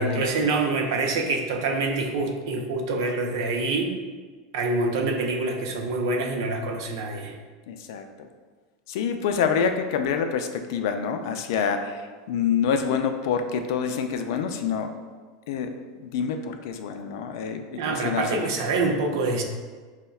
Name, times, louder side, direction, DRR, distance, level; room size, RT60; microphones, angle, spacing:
voice 1, 0.0-4.0 4.5-7.4 17.8-19.4, right 3 dB, 75° right, 2 dB, 0.5 m, -26 dB
voice 2, 7.7-8.3 8.9-14.9 15.5-15.7 16.0-18.5, left 6 dB, 70° left, 6 dB, 0.3 m, -27 dB
5.3 x 2.1 x 2.3 m, 1.4 s
supercardioid pair, 130°, 2 cm